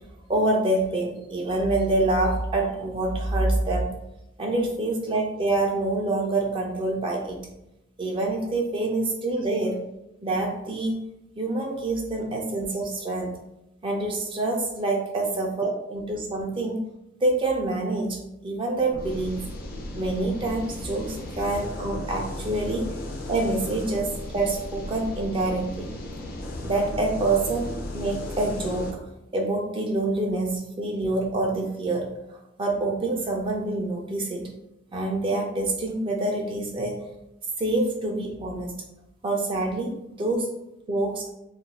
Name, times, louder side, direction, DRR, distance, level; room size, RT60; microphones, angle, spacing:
voice 1, 0.3-3.9 4.4-7.4 8.0-9.8 10.2-10.9 11.4-13.4 13.8-16.8 17.2-18.2 18.4-19.4 20.0-22.9 23.3-25.9 26.6-29.0 29.3-34.5 34.9-37.0 37.6-38.7 39.2-40.5 40.9-41.2, right 2 dB, 25° right, 0 dB, 0.4 m, -26 dB
sound 1, 18.9-28.9, left 1 dB, 50° left, 0.4 m, -35 dB
2.4 x 2.2 x 3.1 m, 0.87 s
head